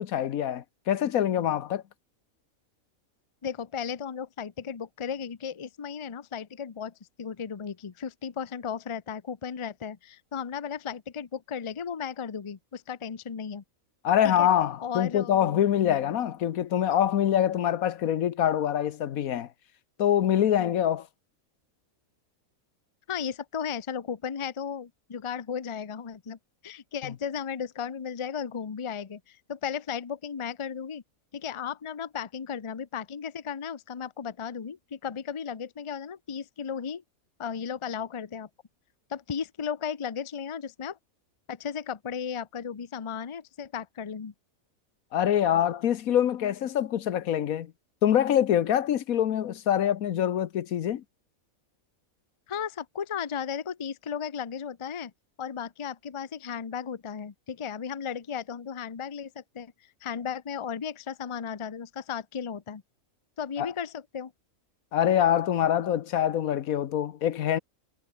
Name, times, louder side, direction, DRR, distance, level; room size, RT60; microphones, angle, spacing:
voice 1, 0.0-1.8 14.0-19.5 20.0-21.1 45.1-47.7 48.0-51.0 63.6-63.7 64.9-67.6, left 10 dB, 80° left, 1.3 m, -25 dB
voice 2, 3.4-13.6 14.2-14.5 14.8-15.6 23.1-26.4 26.6-31.0 31.3-37.0 37.4-38.5 39.1-41.0 41.5-44.3 52.5-55.1 55.4-59.7 60.0-62.8 63.4-64.3, left 7 dB, 30° left, 0.6 m, -35 dB
omnidirectional pair, 1.5 m